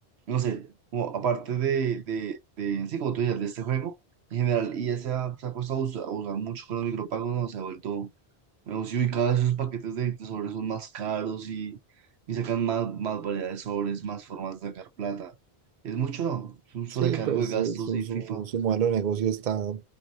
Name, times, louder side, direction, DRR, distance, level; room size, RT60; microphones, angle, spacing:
voice 1, 0.3-3.9 4.3-8.1 8.7-11.8 12.3-15.3 15.8-18.5, right 8 dB, 85° right, 1.0 m, -29 dB
voice 2, 17.0-19.8, right 8 dB, 55° right, 0.7 m, -28 dB
4.7 x 2.6 x 2.9 m
omnidirectional pair, 1.1 m